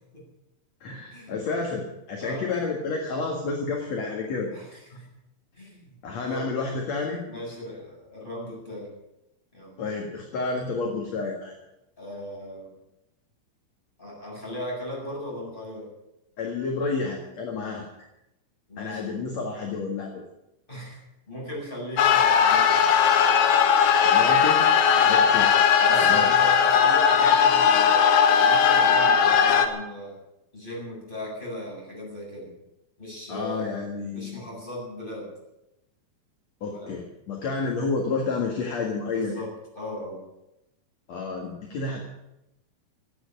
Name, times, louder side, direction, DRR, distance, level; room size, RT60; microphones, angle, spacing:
voice 1, 0.8-4.5 6.0-7.2 9.8-11.5 16.4-18.1 18.8-20.2 24.0-24.7 25.1-25.5 26.0-26.3 33.3-34.4 36.6-39.4 41.1-42.0, left 4 dB, 55° left, 1 dB, 2.8 m, -30 dB
voice 2, 4.5-5.1 5.5-5.9 6.3-6.5 7.2-8.9 9.5-9.8 12.0-12.7 14.0-15.9 18.7-19.2 20.7-21.0 21.3-22.9 24.9-25.2 25.8-30.2 30.5-32.5 33.0-33.8 34.1-35.3 36.7-37.0 39.1-40.2, equal, 15° left, -4 dB, 7.6 m, -37 dB
sound 1, 22.0-29.7, left 7 dB, 85° left, 3.0 m, -18 dB
16.0 x 9.4 x 9.1 m, 0.89 s
omnidirectional pair, 4.1 m